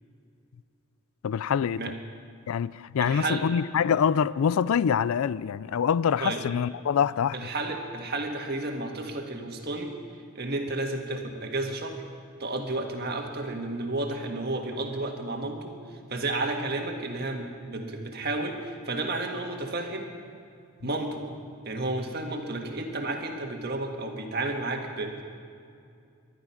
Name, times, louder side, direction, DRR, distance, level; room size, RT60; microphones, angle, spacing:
voice 1, 1.2-1.8 2.5-7.4, left 7 dB, 75° left, 0.3 m, -25 dB
voice 2, 3.0-3.4 6.2-6.4 7.3-9.9 10.3-12.0 12.4-20.1 20.8-21.2 21.6-25.2, right 2 dB, 45° right, 1.6 m, -32 dB
20.5 x 12.0 x 5.8 m
head